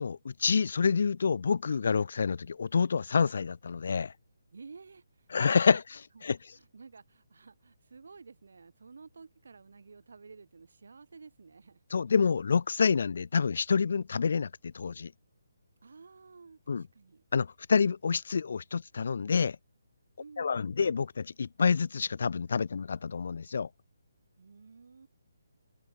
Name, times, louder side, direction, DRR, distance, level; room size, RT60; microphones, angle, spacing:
voice 1, 0.0-4.1 5.3-6.4 11.9-15.1 16.7-16.8 17.3-19.6 20.4-23.7, left 5 dB, 55° left, 0.5 m, -28 dB
voice 2, 4.5-5.3 5.7-5.8 6.1-6.3 6.5-11.8 15.8-17.2 20.2-20.9 24.4-25.1, right 4 dB, 60° right, 4.5 m, -52 dB
figure-of-eight pair, 140°, 0 cm